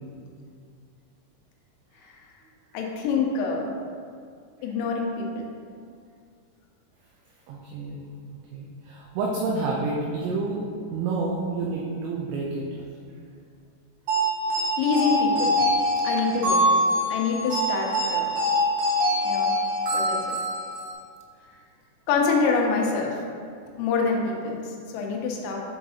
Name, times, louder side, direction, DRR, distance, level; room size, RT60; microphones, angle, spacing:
voice 1, 2.7-3.7 4.6-5.4 14.8-15.5 16.0-16.8 17.1-18.3 19.2-19.5 19.9-20.4 22.1-23.2 23.8-25.6, left 4 dB, 80° left, 0 dB, 3.2 m, -26 dB
voice 2, 7.5-8.1 8.5-12.7, right 3 dB, 90° right, -2 dB, 2.6 m, -29 dB
sound 1, 14.1-20.9, equal, 65° right, 2.5 m, -24 dB
7.7 x 5.7 x 2.8 m, 2.2 s
omnidirectional pair, 6.0 m